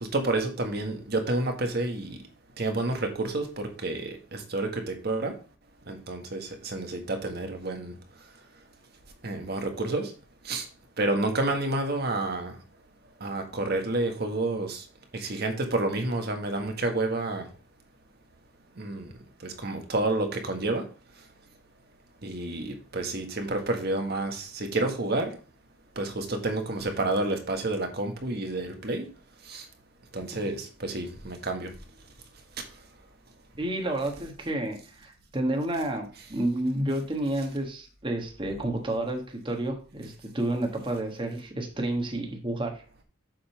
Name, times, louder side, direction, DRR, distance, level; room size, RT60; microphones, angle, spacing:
voice 1, 0.0-2.2 2.6-5.3 5.9-7.9 9.2-10.1 10.4-10.7 11.0-12.6 13.2-14.8 15.1-17.5 18.8-19.1 19.4-20.8 22.2-25.3 25.9-29.1 29.4-29.7 30.1-31.7 32.6-32.7, right 2 dB, 50° right, 1.4 m, -29 dB
voice 2, 33.6-42.8, right 1 dB, 25° right, 1.4 m, -30 dB
7.5 x 3.8 x 5.7 m
head